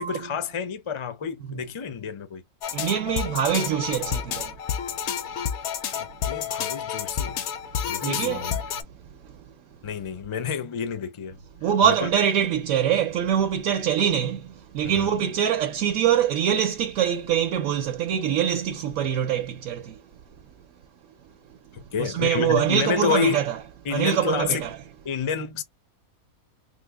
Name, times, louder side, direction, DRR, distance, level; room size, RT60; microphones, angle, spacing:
voice 1, 0.0-2.4 5.4-5.5 6.0-7.4 7.8-8.6 9.8-11.4 11.8-12.1 14.8-15.1 21.7-23.4 23.8-24.7 25.0-25.6, left 7 dB, 50° left, 0.3 m, -29 dB
sound 1, 2.6-8.8, left 8 dB, 65° left, 0.7 m, -30 dB
voice 2, 2.7-4.5 8.0-8.5 9.2-9.4 11.6-20.0 21.5-21.6 22.0-23.6 23.9-24.8, right 9 dB, 70° right, 0.9 m, -24 dB
3.4 x 2.1 x 3.4 m
omnidirectional pair, 1.5 m